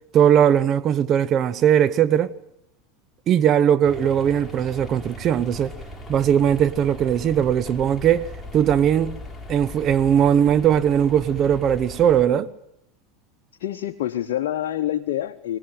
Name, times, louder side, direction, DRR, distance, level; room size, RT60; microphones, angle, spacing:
voice 1, 0.1-2.3 3.3-5.7 6.1-8.3 8.5-9.1 9.5-12.5, right 9 dB, 40° right, 1.1 m, -19 dB
sound 1, 3.8-12.3, left 1 dB, 10° left, 4.7 m, -39 dB
voice 2, 13.6-15.6, left 12 dB, 70° left, 0.9 m, -26 dB
24.0 x 18.5 x 9.1 m
hypercardioid pair, 90°, 0 cm